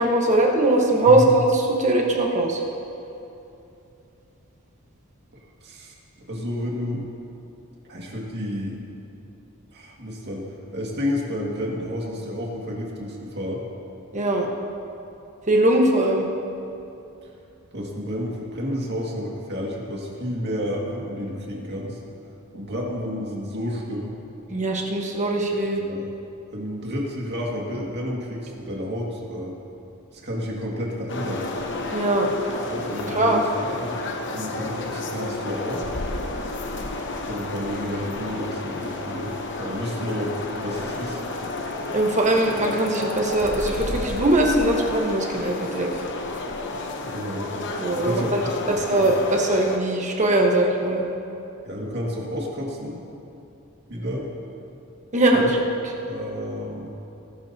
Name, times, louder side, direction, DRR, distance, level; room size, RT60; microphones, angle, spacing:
voice 1, 0.0-2.6 14.1-14.5 15.5-16.3 24.5-25.8 31.9-32.3 33.1-33.4 41.9-45.9 47.8-48.4 48.7-51.0 55.1-55.4, right 1 dB, 35° right, 0 dB, 1.4 m, -21 dB
voice 2, 5.6-5.9 6.3-7.1 7.9-8.8 9.7-10.4 10.7-13.6 17.7-22.0 22.5-24.2 25.8-26.1 26.5-29.5 30.1-31.5 32.7-34.0 34.3-35.9 37.2-41.2 47.0-47.5 48.0-49.1 51.6-53.0 53.9-54.3 55.3-55.5 56.0-56.9, equal, 50° right, -3 dB, 2.2 m, -30 dB
sound 1, 31.1-49.8, left 2 dB, 55° left, 1.0 m, -31 dB
19.0 x 12.0 x 2.9 m, 2.8 s
head